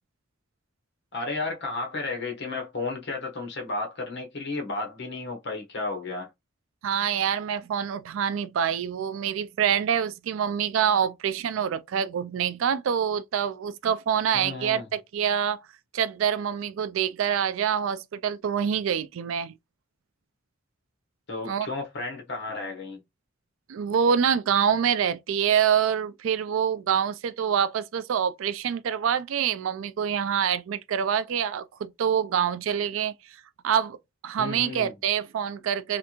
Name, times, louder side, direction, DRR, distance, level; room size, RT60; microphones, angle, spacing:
voice 1, 1.1-6.3 14.3-14.9 21.3-23.0 34.4-34.9, left 3 dB, 60° left, 1.1 m, -33 dB
voice 2, 6.8-15.6 15.9-19.5 21.5-21.7 23.7-33.1 33.6-34.0 34.2-36.0, right 8 dB, 70° right, 0.3 m, -26 dB
3.3 x 2.5 x 2.9 m
head